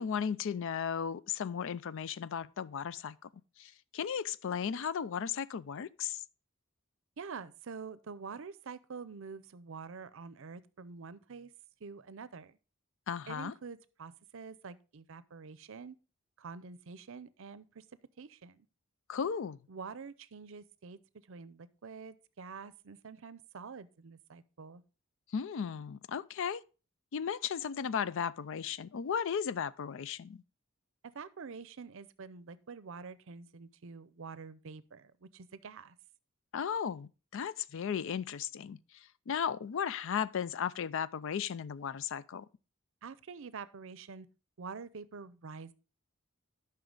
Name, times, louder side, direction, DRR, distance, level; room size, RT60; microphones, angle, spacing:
voice 1, 0.0-3.3 3.6-6.2 13.1-13.5 19.1-19.6 25.3-26.6 27.1-30.4 36.5-42.5, left 7 dB, 65° left, 0.4 m, -35 dB
voice 2, 7.2-11.5 11.8-12.6 13.3-16.0 16.4-17.8 18.2-18.7 19.7-21.0 21.3-24.8 31.1-36.0 43.0-44.3 44.6-45.7, right 5 dB, 65° right, 0.6 m, -47 dB
11.5 x 5.8 x 3.8 m
head